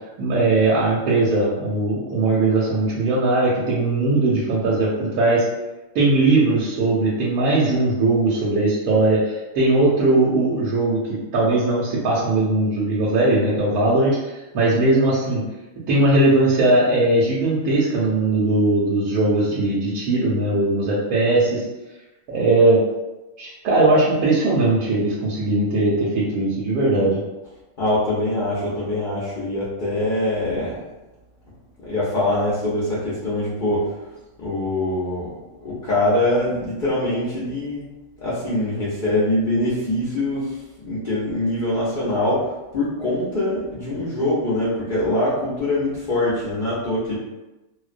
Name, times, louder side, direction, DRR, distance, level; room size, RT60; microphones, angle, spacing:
voice 1, 0.2-5.4 5.9-11.0 11.3-15.4 15.9-21.6 22.3-22.8 23.4-27.2, right 2 dB, 90° right, -6 dB, 1.1 m, -19 dB
voice 2, 27.8-30.8 31.8-34.1 34.4-37.8 38.2-47.2, left 1 dB, 60° left, -10 dB, 0.5 m, -23 dB
2.4 x 2.1 x 2.4 m, 1.0 s
omnidirectional pair, 1.5 m